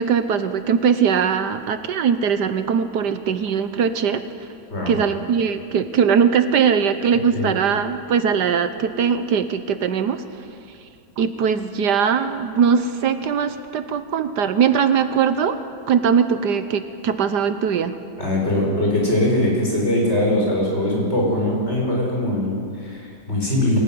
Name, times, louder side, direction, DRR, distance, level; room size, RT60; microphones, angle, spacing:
voice 1, 0.0-4.5 4.9-10.9 11.2-15.6 15.9-18.0, right 7 dB, 70° right, 10 dB, 1.5 m, -21 dB
voice 2, 18.2-23.8, left 1 dB, 35° left, -3 dB, 6.6 m, -21 dB
24.0 x 18.0 x 9.5 m, 2.5 s
omnidirectional pair, 1.9 m